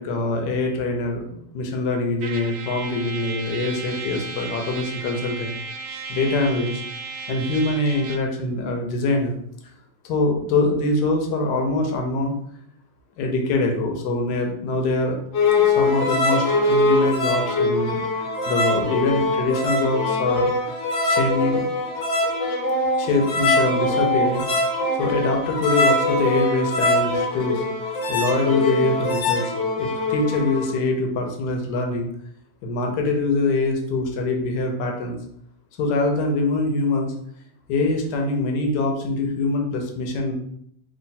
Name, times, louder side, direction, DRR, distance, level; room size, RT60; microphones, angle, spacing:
voice 1, 0.0-5.5 6.1-6.8 7.3-9.4 10.0-12.3 13.2-15.2 15.6-20.5 21.1-21.6 23.0-24.6 25.0-27.6 28.1-32.1 32.6-35.2 35.8-37.1 37.7-40.3, left 2 dB, 80° left, 2 dB, 1.2 m, -24 dB
Trumpet, 2.2-8.3, right 4 dB, 70° right, 0.9 m, -35 dB
sound 1, 15.3-30.7, left 2 dB, 55° left, 0.8 m, -22 dB
3.2 x 2.6 x 4.0 m, 0.70 s
omnidirectional pair, 1.9 m